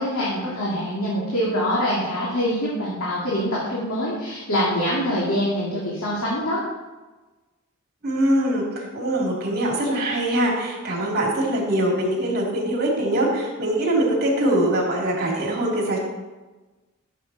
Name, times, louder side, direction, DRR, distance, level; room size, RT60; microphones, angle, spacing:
voice 1, 0.0-6.6, equal, 80° left, -7 dB, 2.8 m, -24 dB
voice 2, 8.0-16.0, right 1 dB, 45° right, -2 dB, 3.2 m, -23 dB
13.5 x 7.5 x 4.3 m, 1.2 s
head